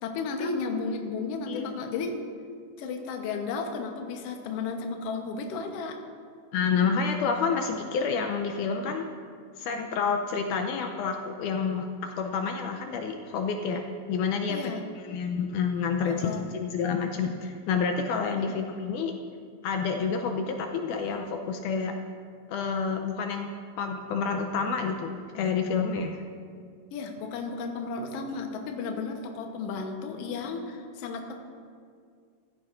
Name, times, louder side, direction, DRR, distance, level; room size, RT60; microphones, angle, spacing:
voice 1, 0.0-2.1 2.8-6.0 14.5-14.9 16.1-16.5 18.4-18.6 26.9-31.3, left 4 dB, 65° left, 3 dB, 1.7 m, -33 dB
voice 2, 1.5-1.8 6.5-9.1 9.6-14.7 15.1-19.1 19.6-21.9 22.5-23.5 23.8-26.2, left 5 dB, 80° left, 4 dB, 2.0 m, -29 dB
15.0 x 13.5 x 2.5 m, 2.2 s
omnidirectional pair, 3.8 m